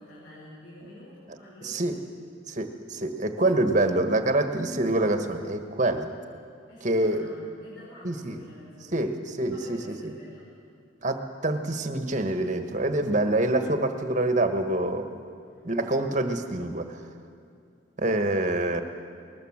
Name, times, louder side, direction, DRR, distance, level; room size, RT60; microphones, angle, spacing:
voice 1, 0.0-2.0 6.7-9.0 9.5-10.5, left 1 dB, 90° left, -8 dB, 6.3 m, -48 dB
voice 2, 1.6-1.9 2.5-6.1 6.8-7.3 8.0-8.4 8.9-9.8 11.0-15.2 15.6-17.0 18.0-18.8, right 2 dB, 40° right, 7 dB, 1.4 m, -26 dB
20.5 x 19.5 x 7.4 m, 2.5 s
head